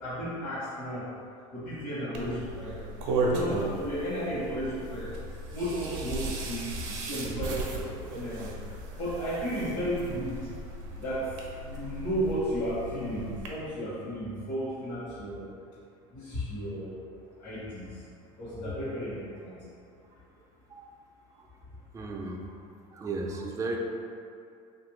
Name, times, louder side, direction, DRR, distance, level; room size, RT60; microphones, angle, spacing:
voice 1, 0.0-1.0 1.5-2.8 3.1-5.1 5.5-10.4 11.0-11.3 11.6-15.4 16.1-16.9 17.4-17.9 18.4-19.2 19.4-19.6, equal, 55° left, -11 dB, 1.1 m, -33 dB
sound 1, 2.1-13.5, right 2 dB, 85° right, 0.5 m, -36 dB
voice 2, 21.9-22.6 22.9-23.8, right 3 dB, 20° right, 0 dB, 0.3 m, -36 dB
3.0 x 2.5 x 3.0 m, 2.4 s
supercardioid pair, 110°, 16 cm